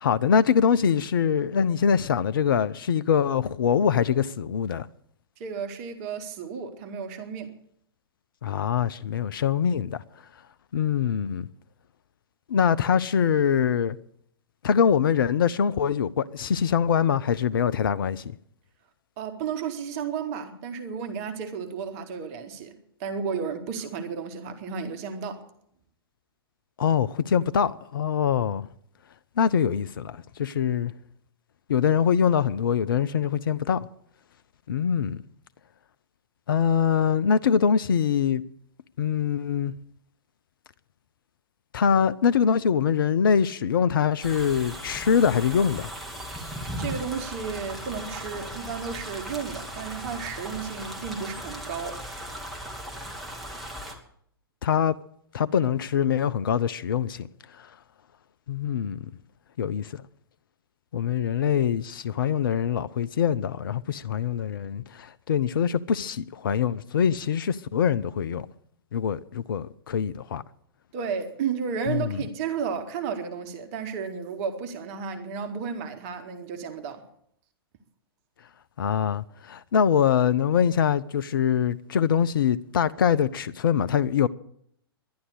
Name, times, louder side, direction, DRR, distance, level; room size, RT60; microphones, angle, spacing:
voice 1, 0.0-4.9 8.4-10.0 10.7-11.5 12.5-14.0 14.6-18.4 26.8-28.7 29.4-30.9 31.7-33.9 34.7-35.2 36.5-38.4 39.0-39.7 41.7-45.9 54.6-55.0 55.3-57.3 57.5-57.7 58.5-59.1 59.6-60.0 60.9-68.5 68.9-70.4 71.9-72.2 78.8-84.3, left 7 dB, 60° left, 0.5 m, -24 dB
voice 2, 5.4-7.5 19.2-25.5 46.8-52.0 70.9-77.0, right 6 dB, 40° right, 1.5 m, -33 dB
sound 1, 44.2-53.9, right 1 dB, ahead, 2.0 m, -37 dB
11.5 x 11.0 x 8.2 m
figure-of-eight pair, 110°, 13 cm